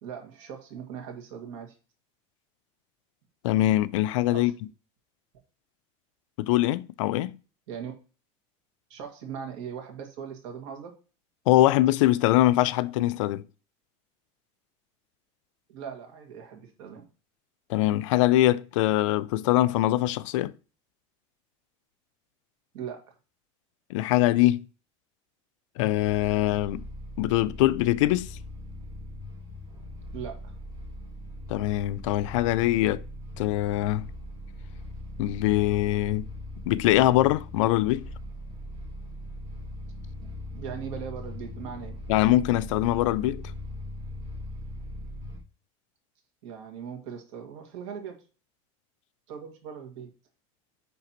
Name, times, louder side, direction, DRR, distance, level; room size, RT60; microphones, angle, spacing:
voice 1, 0.0-1.8 4.3-4.5 7.7-7.9 8.9-10.9 15.7-17.0 22.7-23.1 30.1-30.6 40.2-42.0 46.4-48.2 49.3-50.1, right 7 dB, 75° right, 2.0 m, -39 dB
voice 2, 3.4-4.5 6.4-7.3 11.5-13.4 17.7-20.5 23.9-24.7 25.8-26.8 27.2-28.3 31.5-33.0 33.4-34.1 35.2-36.3 36.7-38.0 42.1-43.4, left 15 dB, 85° left, 0.4 m, -23 dB
sound 1, 25.9-45.4, left 1 dB, 40° right, 1.9 m, -40 dB
10.0 x 3.4 x 2.9 m
supercardioid pair, 155°, 16 cm